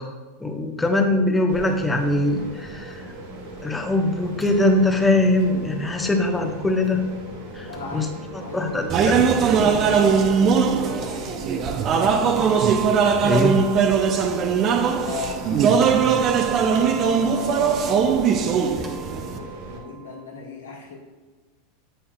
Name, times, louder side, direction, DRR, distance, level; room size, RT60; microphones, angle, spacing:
voice 1, 0.4-3.0 3.6-7.0 7.5-8.1 8.5-9.2 13.2-13.6, left 2 dB, 10° left, 3 dB, 0.9 m, -22 dB
sound 1, 1.5-19.8, right 1 dB, 65° right, 1.6 m, -38 dB
sound 2, 4.4-6.5 7.7-8.7 10.0-11.2 12.4-15.5 15.8-20.2, right 7 dB, 15° right, 1.2 m, -39 dB
voice 2, 7.7-12.7 14.9-18.7 19.3-21.0, left 3 dB, 80° left, -3 dB, 1.6 m, -38 dB
sound 3, 8.9-19.4, right 6 dB, 40° right, 0.5 m, -20 dB
8.4 x 5.6 x 2.3 m, 1.4 s
hypercardioid pair, 90°, 0 cm